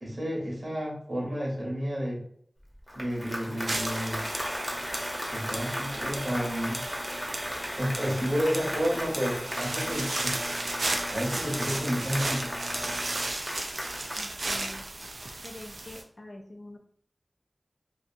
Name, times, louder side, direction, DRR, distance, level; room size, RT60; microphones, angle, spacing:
voice 1, 0.0-2.2 2.9-4.3 5.3-6.8 7.8-10.4 11.1-12.5, equal, 60° right, -3 dB, 1.0 m, -31 dB
Applause, 2.7-15.3, equal, 5° left, 0.7 m, -36 dB
sound 1, 3.7-13.3, equal, 15° right, 0.3 m, -39 dB
sound 2, 3.7-16.0, right 2 dB, 85° right, 0.4 m, -36 dB
voice 2, 14.2-14.9 15.4-16.8, left 1 dB, 70° left, 2 dB, 0.5 m, -45 dB
2.8 x 2.4 x 2.6 m, 0.62 s
wide cardioid pair, 55°, 0 cm